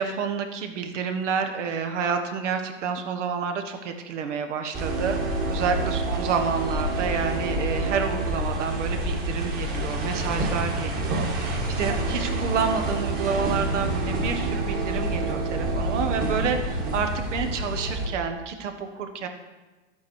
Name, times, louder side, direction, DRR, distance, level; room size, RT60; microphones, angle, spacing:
voice 1, 0.0-5.2 5.5-19.3, right 6 dB, 65° right, 6 dB, 1.5 m, -29 dB
sound 1, 4.7-18.1, right 2 dB, 25° right, 1.9 m, -27 dB
12.0 x 8.3 x 4.7 m, 1.2 s
hypercardioid pair, 155°, 38 cm